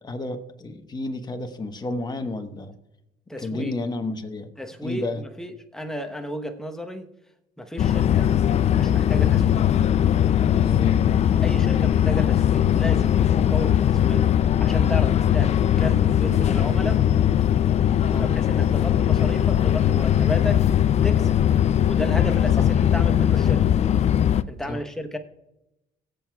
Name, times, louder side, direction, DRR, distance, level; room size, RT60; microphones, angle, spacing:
voice 1, 0.0-2.7 3.4-4.5 4.8-5.2 10.6-11.1 18.1-18.4 22.6-22.7 24.7-24.8, left 2 dB, 25° left, 1.1 m, -31 dB
voice 2, 3.3-3.8 4.6-7.1 7.6-8.4 8.7-9.7 11.4-14.3 14.6-17.0 18.2-20.6 21.0-21.3 21.8-23.7 24.5-25.2, equal, 5° left, 1.0 m, -33 dB
sound 1, 7.8-24.4, left 10 dB, 40° left, 0.4 m, -20 dB
23.0 x 7.8 x 2.3 m
cardioid pair, 110°, 17 cm